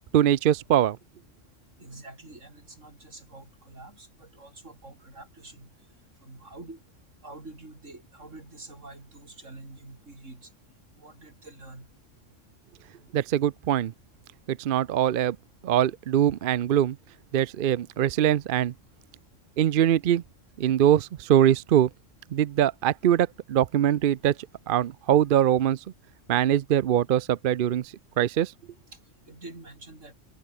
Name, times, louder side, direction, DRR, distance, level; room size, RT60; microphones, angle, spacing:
voice 1, 0.1-1.0 13.1-13.9 14.5-15.4 15.6-17.0 17.3-18.7 19.6-20.2 20.6-21.9 22.3-24.4 24.7-25.8 26.3-28.5, right 11 dB, 55° right, 0.6 m, -22 dB
voice 2, 1.8-5.7 6.2-6.8 7.2-10.5 11.0-11.9 29.3-30.1, right 2 dB, 80° right, 5.2 m, -46 dB
omnidirectional pair, 1.3 m